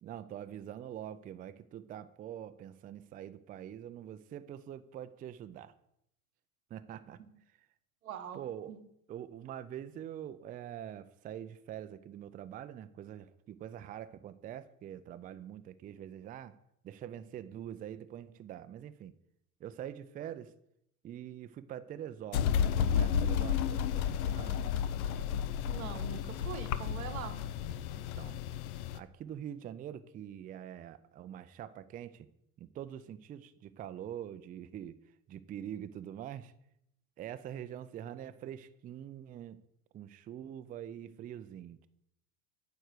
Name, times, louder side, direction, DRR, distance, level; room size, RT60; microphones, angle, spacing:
voice 1, 0.0-5.7 6.7-7.2 8.3-8.7 9.1-16.5 16.8-19.1 19.6-20.5 21.0-24.6 28.0-28.4 28.9-32.3 32.6-35.0 35.3-36.5 37.2-39.6 39.9-41.9, right 10 dB, 20° right, 12 dB, 0.4 m, -44 dB
voice 2, 8.0-8.4 8.7-8.8 25.7-27.4, right 8 dB, 85° right, 7 dB, 1.2 m, -42 dB
sound 1, 22.3-29.0, left 8 dB, 80° left, 0.6 m, -32 dB
9.3 x 4.6 x 6.5 m, 0.76 s
hypercardioid pair, 95°, 41 cm